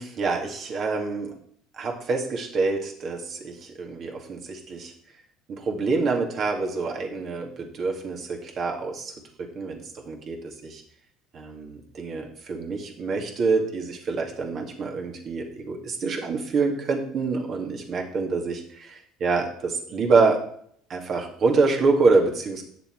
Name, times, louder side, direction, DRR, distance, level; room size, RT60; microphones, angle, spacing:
voice 1, 0.0-1.3 1.8-4.9 5.5-9.1 9.4-10.8 11.3-20.4 20.9-22.6, right 4 dB, 50° right, 1 dB, 2.3 m, -26 dB
8.9 x 6.8 x 4.7 m, 0.64 s
supercardioid pair, 80°, 0 cm